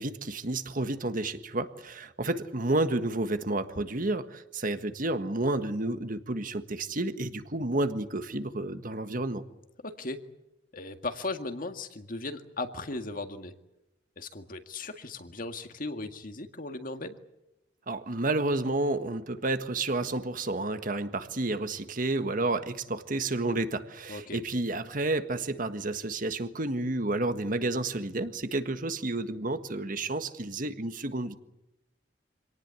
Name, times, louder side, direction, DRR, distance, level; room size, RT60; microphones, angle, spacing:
voice 1, 0.0-9.4 17.9-31.3, right 2 dB, 50° right, 9 dB, 1.6 m, -30 dB
voice 2, 9.8-10.2 10.7-13.5 14.2-17.2 24.1-24.4, left 2 dB, 50° left, 7 dB, 2.0 m, -37 dB
26.0 x 18.5 x 8.4 m, 0.95 s
head